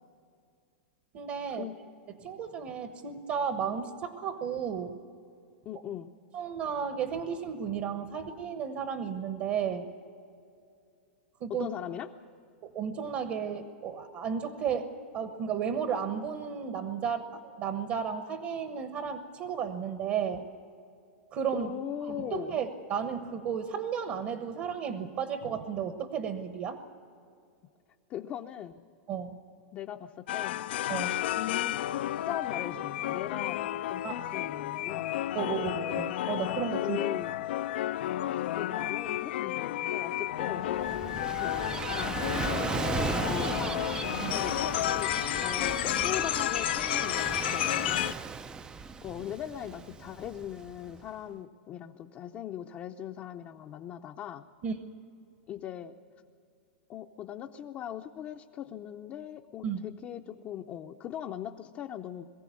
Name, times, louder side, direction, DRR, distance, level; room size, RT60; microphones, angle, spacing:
voice 1, 1.1-1.7 2.2-5.0 6.3-9.9 11.4-11.7 12.6-14.9 15.1-20.5 21.3-21.8 22.1-26.8 29.1-29.3 30.9-31.2 34.0-34.4 35.3-37.0 44.2-44.4 54.6-54.7 59.6-59.8, right 7 dB, 40° right, 8 dB, 1.1 m, -33 dB
voice 2, 5.6-6.1 11.5-12.1 21.5-22.6 28.1-28.8 29.7-30.6 31.4-31.8 32.3-35.2 36.8-37.3 38.2-42.3 43.1-43.8 44.3-45.1 45.4-48.0 49.0-54.4 55.5-55.9 56.9-62.3, left 10 dB, 30° left, 2 dB, 0.6 m, -40 dB
sound 1, 30.3-48.1, left 13 dB, 70° left, 0.5 m, -31 dB
Gull seagull / Waves surf, 40.4-51.0, right 5 dB, 15° right, 0.4 m, -36 dB
22.5 x 15.0 x 8.5 m, 2.4 s
supercardioid pair, 150°, 6 cm